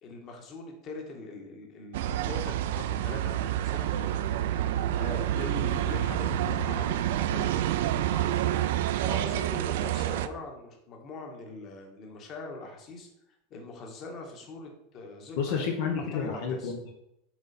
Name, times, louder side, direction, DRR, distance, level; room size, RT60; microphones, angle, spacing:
voice 1, 0.0-4.2 5.0-7.0 7.3-8.4 8.9-15.6 16.1-16.7, left 3 dB, 30° left, 2 dB, 1.6 m, -42 dB
sound 1, 1.9-10.3, right 12 dB, 70° right, 0.5 m, -28 dB
sound 2, 5.7-7.9 8.2-8.3, left 5 dB, 15° left, 0.7 m, -44 dB
voice 2, 15.4-16.9, left 6 dB, 60° left, 2 dB, 1.1 m, -30 dB
7.8 x 4.0 x 5.9 m, 0.82 s
supercardioid pair, 165°, 0 cm